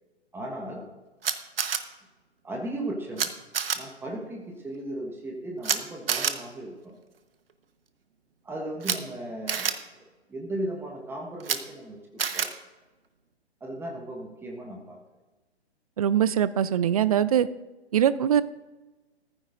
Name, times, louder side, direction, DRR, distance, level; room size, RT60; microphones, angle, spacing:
voice 1, 0.3-0.8 2.4-3.3 3.7-7.0 8.4-9.7 10.3-12.5 13.6-15.0, right 1 dB, 5° right, 0 dB, 1.3 m, -36 dB
Camera, 1.2-1.8 3.2-3.3 3.5-3.8 5.6-5.8 6.1-6.3 8.8-9.0 9.5-9.7 11.4-11.6 12.2-12.5, right 7 dB, 60° right, 1.2 m, -26 dB
voice 2, 16.0-17.5 17.9-18.4, right 9 dB, 35° right, 16 dB, 0.5 m, -22 dB
19.0 x 14.5 x 2.6 m, 1.1 s
figure-of-eight pair, 130°, 33 cm